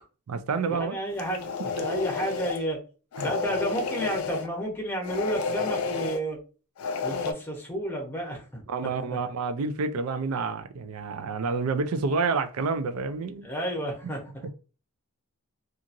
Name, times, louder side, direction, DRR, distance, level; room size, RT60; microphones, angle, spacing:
voice 1, 0.3-1.0 1.8-1.9 3.2-3.3 8.7-13.5 14.4-14.5, right 4 dB, 85° right, 0.4 m, -29 dB
voice 2, 0.8-2.8 3.2-6.4 7.0-8.9 13.4-14.5, right 1 dB, 10° left, 0.8 m, -31 dB
sound 1, 1.1-2.6 3.1-4.5 5.0-6.2 6.8-7.3, left 5 dB, 90° left, 0.4 m, -31 dB
2.8 x 2.4 x 2.5 m
head